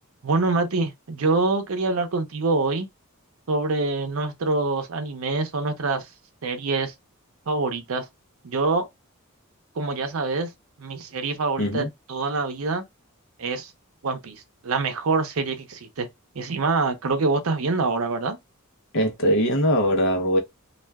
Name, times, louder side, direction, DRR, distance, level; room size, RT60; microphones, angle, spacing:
voice 1, 0.2-2.9 3.5-6.1 6.4-6.9 7.5-8.1 8.4-8.9 9.8-10.5 10.8-12.8 13.4-13.7 14.0-16.1 16.3-18.4, right 3 dB, 70° right, 0.6 m, -25 dB
voice 2, 11.6-11.9 18.9-20.4, equal, 60° left, 0.7 m, -21 dB
2.4 x 2.2 x 3.3 m
head